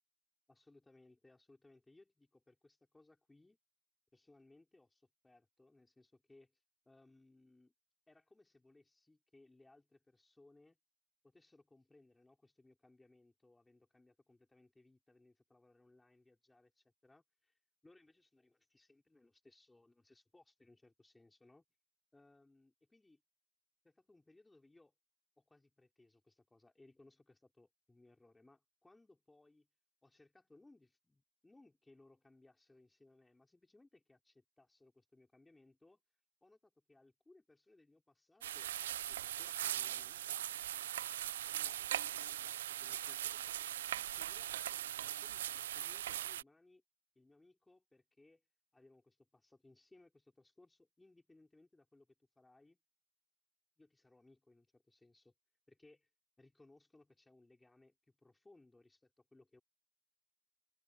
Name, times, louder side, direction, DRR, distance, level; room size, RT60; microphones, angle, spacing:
voice 1, 0.5-3.6 4.1-7.7 8.1-10.8 11.2-21.6 22.1-23.2 23.8-24.9 25.4-29.7 30.0-36.0 36.4-38.7 39.0-40.5 41.5-43.7 44.1-46.8 47.1-48.4 48.7-52.8 53.8-55.3 55.7-56.1 56.4-59.6, left 2 dB, 5° left, 4.6 m, -66 dB
sound 1, 38.4-46.4, right 12 dB, 45° right, 0.4 m, -40 dB
hypercardioid pair, 140°, 0 cm